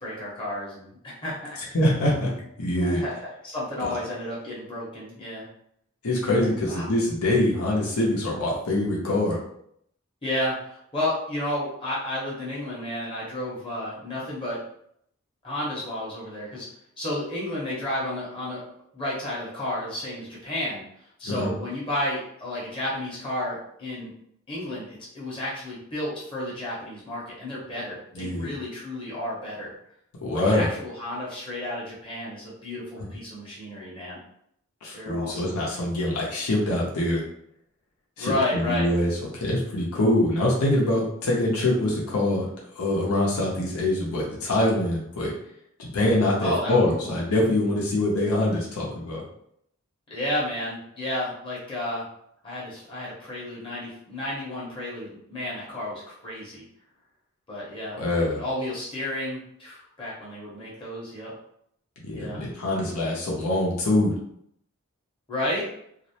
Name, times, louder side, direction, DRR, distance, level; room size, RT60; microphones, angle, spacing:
voice 1, 0.0-1.6 2.8-3.2 3.4-5.5 6.3-6.9 10.2-14.6 15.4-16.7 17.0-18.6 18.9-20.8 21.2-24.1 24.5-29.7 30.3-34.2 34.9-35.5 38.2-38.9 46.4-47.2 50.1-52.1 52.4-56.6 57.5-58.0 58.4-61.3 62.1-62.4 65.3-65.7, left 1 dB, 25° left, -7 dB, 0.7 m, -32 dB
voice 2, 1.7-2.3 2.6-3.0 3.9-4.0 6.0-9.4 21.2-21.5 28.1-28.5 30.2-30.7 34.8-37.2 38.2-42.5 42.7-45.3 45.8-49.2 58.0-58.4 62.0-64.1, left 1 dB, 85° left, -4 dB, 0.6 m, -24 dB
2.4 x 2.0 x 2.7 m, 0.71 s
head